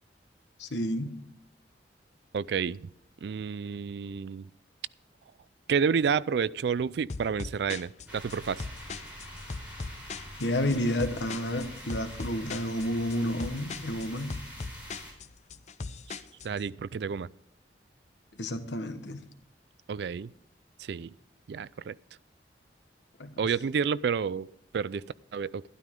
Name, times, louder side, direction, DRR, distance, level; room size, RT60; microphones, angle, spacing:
voice 1, 0.6-1.2 10.4-14.4 18.4-19.2 23.2-23.4, left 1 dB, 80° left, 8 dB, 1.2 m, -30 dB
voice 2, 2.3-2.9 3.2-4.5 5.7-8.7 16.4-17.3 19.9-20.3 20.8-21.1 21.5-21.9 23.4-24.5 24.7-25.0 25.3-25.6, right 6 dB, 70° right, 20 dB, 0.3 m, -30 dB
sound 1, 7.1-16.6, left 4 dB, 40° left, 0.5 m, -40 dB
sound 2, 8.1-15.1, equal, 10° right, 3.9 m, -45 dB
12.5 x 12.0 x 3.7 m, 0.79 s
head